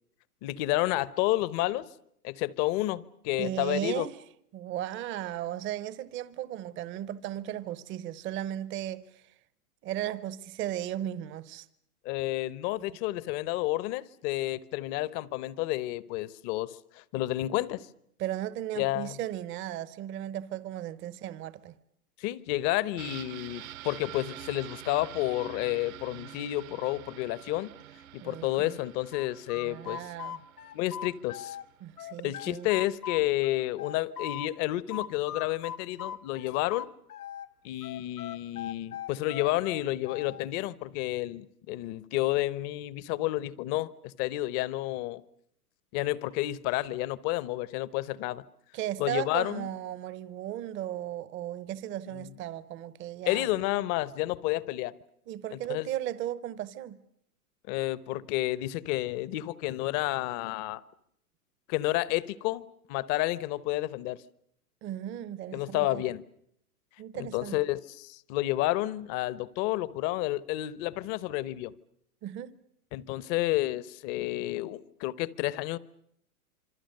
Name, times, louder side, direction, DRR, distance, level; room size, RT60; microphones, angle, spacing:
voice 1, 0.4-1.9 2.2-4.1 12.0-17.9 18.8-19.2 22.2-27.7 28.1-30.0 30.7-31.6 32.2-36.9 37.6-45.2 45.9-48.4 49.0-49.7 52.1-52.3 53.3-54.9 55.5-55.9 57.7-60.8 61.7-64.2 65.5-66.2 67.1-71.7 72.9-75.8, left 16 dB, 35° left, 0.9 m, -30 dB
voice 2, 3.4-4.2 4.5-9.2 9.8-11.7 18.2-21.8 28.2-28.8 29.6-30.4 31.8-32.7 48.7-53.5 55.3-57.0 64.8-66.0 67.0-67.6 72.2-72.5, right 12 dB, 25° right, 0.9 m, -36 dB
sound 1, 23.0-32.6 32.9-33.0, right 12 dB, 60° right, 1.3 m, -47 dB
sound 2, 29.1-31.7 32.0-34.5 34.9-37.5 37.8-40.4, left 9 dB, 80° left, 1.5 m, -40 dB
26.5 x 25.0 x 6.7 m
hypercardioid pair, 120°, 45 cm